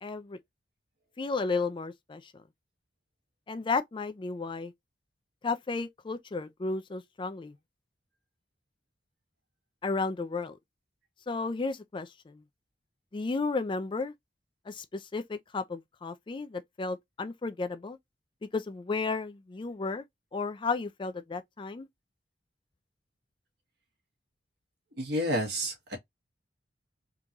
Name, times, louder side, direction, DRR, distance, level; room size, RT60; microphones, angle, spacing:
voice 1, 0.0-0.4 1.2-2.3 3.5-4.7 5.4-7.5 9.8-10.6 11.3-12.4 13.1-14.1 14.7-18.0 18.5-20.0 20.3-21.9, left 4 dB, 25° left, 0.4 m, -33 dB
voice 2, 25.0-26.0, equal, 60° right, 1.5 m, -30 dB
3.6 x 2.9 x 2.4 m
head